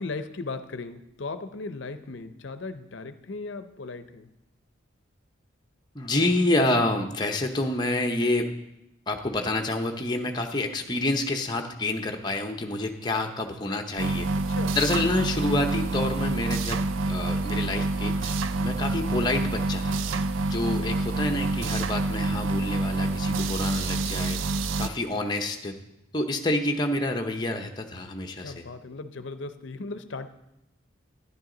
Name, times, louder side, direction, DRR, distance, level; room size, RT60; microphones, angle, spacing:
voice 1, 0.0-4.3 14.4-14.8 28.4-30.3, left 3 dB, 65° left, 10 dB, 0.6 m, -37 dB
voice 2, 5.9-8.5 9.1-14.3 14.8-20.0 20.5-24.4 24.8-25.7 26.1-28.6, left 2 dB, 20° left, 3 dB, 0.7 m, -28 dB
sound 1, 14.0-24.9, right 2 dB, 75° right, 0.4 m, -27 dB
11.0 x 10.5 x 3.8 m, 0.88 s
head